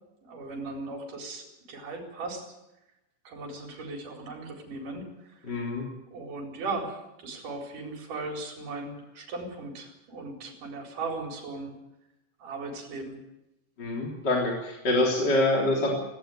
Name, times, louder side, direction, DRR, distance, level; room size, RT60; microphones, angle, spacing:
voice 1, 0.2-2.4 3.3-5.6 6.1-11.7 12.4-13.2, right 3 dB, 50° right, 2 dB, 5.7 m, -37 dB
voice 2, 5.5-5.9 13.8-15.9, left 1 dB, 25° left, -1 dB, 3.8 m, -25 dB
17.5 x 17.5 x 9.3 m, 0.93 s
omnidirectional pair, 5.0 m